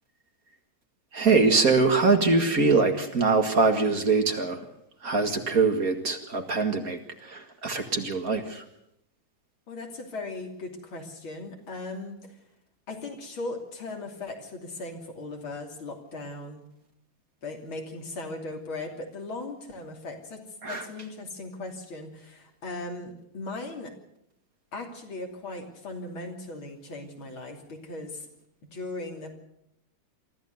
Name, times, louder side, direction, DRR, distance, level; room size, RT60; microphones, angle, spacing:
voice 1, 1.1-4.6 5.0-8.6 20.6-20.9, right 4 dB, 45° right, 5 dB, 2.2 m, -23 dB
voice 2, 9.7-12.4 12.9-16.6 17.4-23.9 24.7-28.3 28.7-29.3, left 2 dB, 75° left, 2 dB, 3.9 m, -38 dB
24.0 x 14.5 x 8.0 m, 0.78 s
omnidirectional pair, 2.3 m